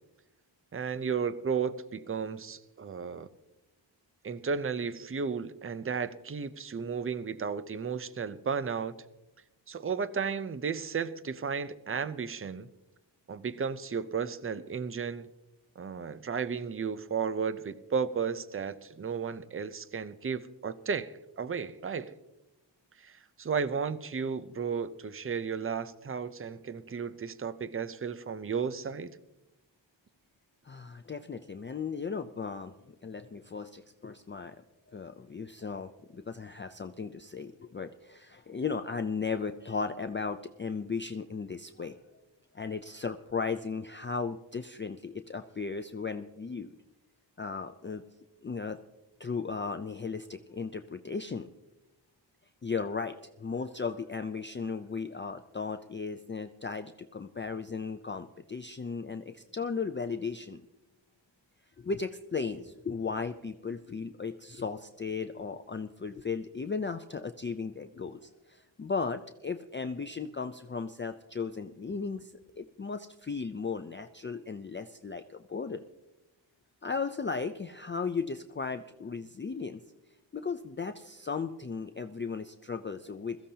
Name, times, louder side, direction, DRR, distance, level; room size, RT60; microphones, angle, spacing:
voice 1, 0.7-3.3 4.2-9.0 9.7-12.7 13.3-15.3 15.8-22.2 23.0-29.2, right 6 dB, 30° right, 0.6 m, -34 dB
voice 2, 30.7-32.7 33.0-34.6 34.9-41.9 42.5-46.8 47.4-48.0 48.4-48.8 49.2-51.5 52.6-60.6 61.8-75.9 76.8-79.8 80.3-83.4, left 5 dB, 25° left, 0.5 m, -36 dB
21.5 x 14.5 x 2.8 m
wide cardioid pair, 125°, 45 cm